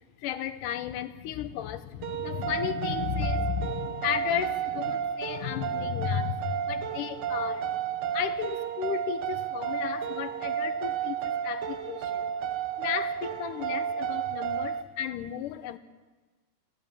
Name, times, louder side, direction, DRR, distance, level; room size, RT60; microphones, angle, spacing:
voice 1, 0.2-12.3 12.8-15.8, left 9 dB, 85° left, 12 dB, 2.5 m, -34 dB
sound 1, 2.0-14.8, right 8 dB, 70° right, 1.7 m, -32 dB
29.5 x 13.0 x 8.8 m, 1.3 s
omnidirectional pair, 3.6 m